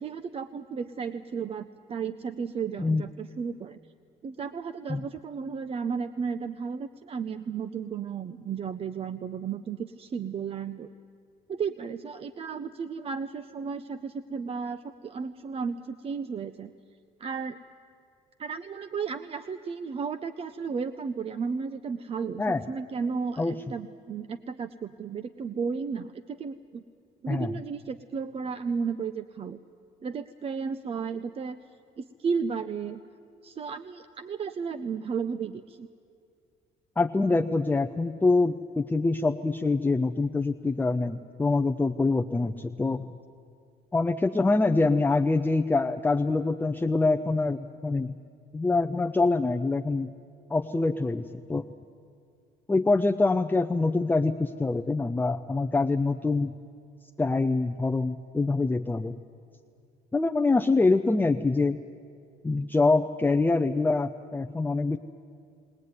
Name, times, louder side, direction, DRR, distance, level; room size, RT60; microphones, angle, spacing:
voice 1, 0.0-3.8 4.2-10.9 11.5-16.7 17.2-17.6 18.4-26.8 27.2-29.6 30.0-31.6 32.0-33.0 33.4-35.9, right 6 dB, 35° right, 11 dB, 0.6 m, -34 dB
voice 2, 2.8-3.1 4.9-5.1 22.4-22.6 23.4-23.5 27.3-27.6 37.0-43.0 43.9-48.2 48.5-50.1 50.5-51.6 52.7-56.5 57.2-59.2 60.1-61.8 62.4-65.0, left 3 dB, 10° left, 6 dB, 0.5 m, -25 dB
21.0 x 18.0 x 9.5 m, 2.3 s
cardioid pair, 110°, 17 cm